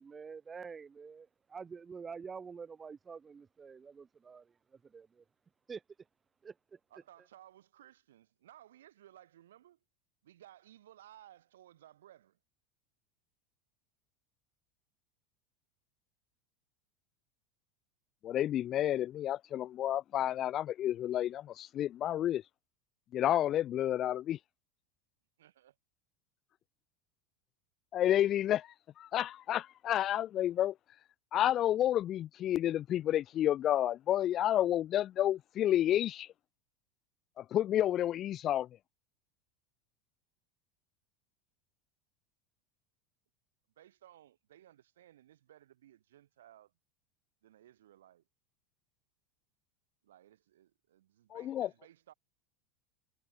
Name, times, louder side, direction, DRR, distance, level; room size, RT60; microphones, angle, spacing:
voice 1, 0.0-4.5 4.8-5.2 5.7-5.8 6.4-6.8, right 5 dB, 25° right, 0.7 m, -47 dB
voice 2, 6.9-9.8 10.2-12.4 25.4-25.7 43.8-46.7 47.4-48.2 50.0-52.1, right 12 dB, 85° right, 3.5 m, -59 dB
voice 3, 18.2-22.4 23.1-24.4 27.9-30.7 31.3-36.3 37.4-38.7 51.3-51.7, left 12 dB, 40° left, 0.4 m, -30 dB
hypercardioid pair, 105°, 0 cm